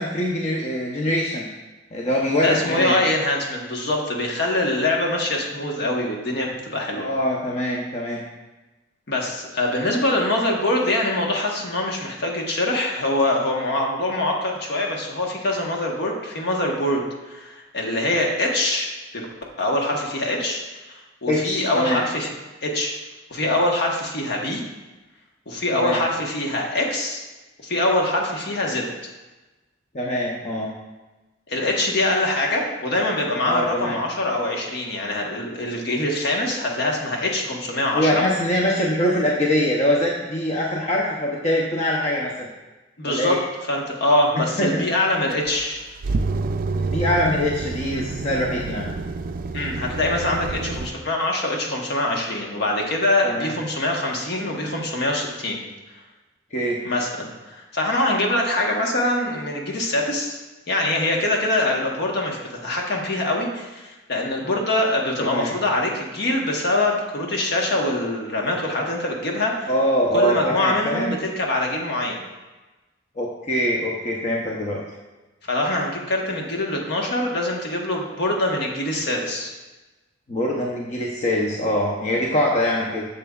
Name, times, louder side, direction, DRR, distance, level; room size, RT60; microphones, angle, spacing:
voice 1, 0.0-1.5 1.9-3.0 7.0-8.2 21.3-22.0 25.7-26.0 28.7-28.8 29.9-30.7 33.4-34.0 37.9-42.5 43.0-43.4 44.3-44.8 46.7-48.9 53.2-53.5 56.5-56.8 65.2-65.5 69.7-71.1 73.2-74.8 80.3-83.1, equal, 35° left, -2 dB, 0.7 m, -23 dB
voice 2, 2.4-7.1 9.1-18.9 19.1-19.3 19.6-20.6 20.9-22.3 22.6-22.9 23.3-24.6 25.5-27.2 27.6-28.9 31.5-38.2 43.0-43.4 43.7-45.8 49.5-55.6 56.8-60.4 60.7-69.7 70.1-72.2 75.5-79.5, left 1 dB, 60° left, 0 dB, 1.2 m, -24 dB
sound 1, 45.3-50.9, right 3 dB, 50° right, 0.4 m, -28 dB
8.7 x 6.8 x 2.4 m, 1.1 s
head